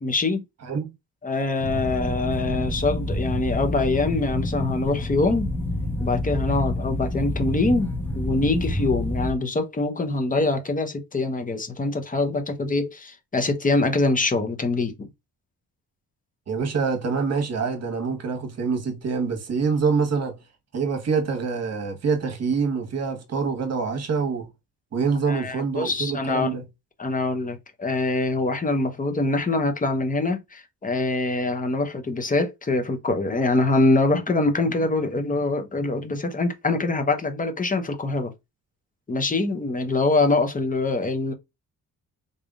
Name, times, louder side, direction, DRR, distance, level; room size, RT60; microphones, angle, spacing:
voice 1, 0.0-0.4 1.2-5.5 6.0-15.1 25.3-26.6 27.0-38.3 39.1-41.3, left 2 dB, 20° left, 0.9 m, -24 dB
sound 1, 1.6-9.3, left 1 dB, 5° left, 0.5 m, -28 dB
voice 2, 16.5-20.4 20.7-24.5 24.9-26.6, right 5 dB, 45° right, 1.3 m, -25 dB
4.0 x 3.4 x 2.4 m
wide cardioid pair, 160°, 37 cm